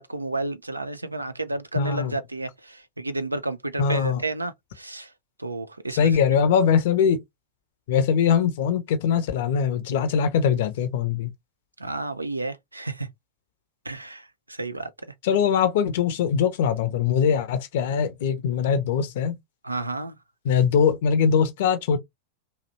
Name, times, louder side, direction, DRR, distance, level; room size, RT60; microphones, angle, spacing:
voice 1, 0.0-5.1 5.4-6.2 11.8-13.1 13.9-14.9 19.6-20.2, right 2 dB, 85° right, 0.3 m, -31 dB
voice 2, 1.7-2.2 3.8-4.2 5.9-7.2 7.9-11.3 15.2-19.4 20.4-22.0, left 7 dB, 55° left, 0.6 m, -22 dB
2.7 x 2.1 x 2.6 m
figure-of-eight pair, 90°, 0 cm